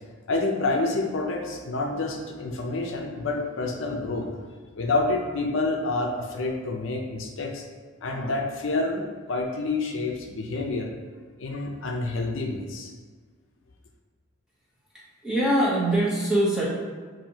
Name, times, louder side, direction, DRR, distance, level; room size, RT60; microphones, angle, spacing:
voice 1, 0.3-4.4 4.8-7.7 8.0-10.9 11.4-12.9, left 2 dB, 70° left, 1 dB, 0.5 m, -28 dB
voice 2, 15.2-16.7, right 1 dB, 5° right, -7 dB, 0.9 m, -22 dB
7.0 x 2.7 x 2.8 m, 1.5 s
head